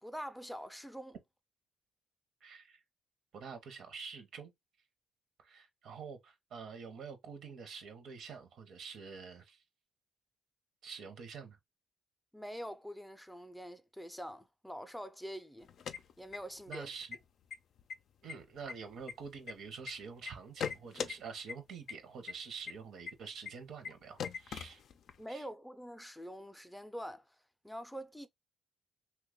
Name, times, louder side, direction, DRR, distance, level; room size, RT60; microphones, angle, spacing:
voice 1, 0.0-1.2 12.3-15.7 16.2-16.9 25.2-27.4 27.6-28.3, equal, ahead, 0.5 m, -45 dB
voice 2, 2.4-2.8 3.3-4.5 5.4-9.6 10.8-11.6 16.7-17.2 18.2-24.8 25.3-25.5, right 5 dB, 70° right, 0.7 m, -47 dB
sound 1, 15.6-16.8 17.1-17.2 17.5-17.9 18.3-19.9 20.3-21.1 21.5-21.6 21.9-22.0 22.3-22.4 22.7-22.8 23.1-23.2 23.4-23.5 23.8-23.9 24.2-25.2, left 7 dB, 65° left, 0.4 m, -40 dB
2.8 x 2.2 x 3.7 m
cardioid pair, 90°, 0 cm